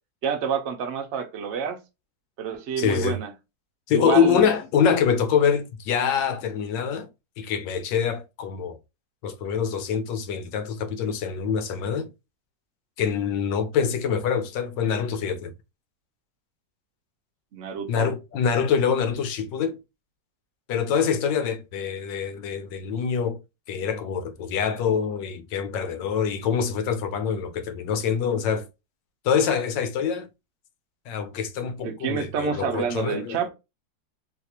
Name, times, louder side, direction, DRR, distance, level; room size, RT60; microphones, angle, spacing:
voice 1, 0.2-1.8 2.4-3.3 3.9-4.5 17.5-18.1 31.8-33.5, right 7 dB, 60° right, 0.7 m, -28 dB
voice 2, 2.8-3.2 3.9-7.1 7.4-8.8 9.2-12.1 13.0-15.5 17.9-19.8 20.7-23.4 23.7-28.7 29.2-30.3 31.1-33.4, left 7 dB, 90° left, 1.3 m, -25 dB
4.1 x 2.5 x 2.8 m
omnidirectional pair, 2.0 m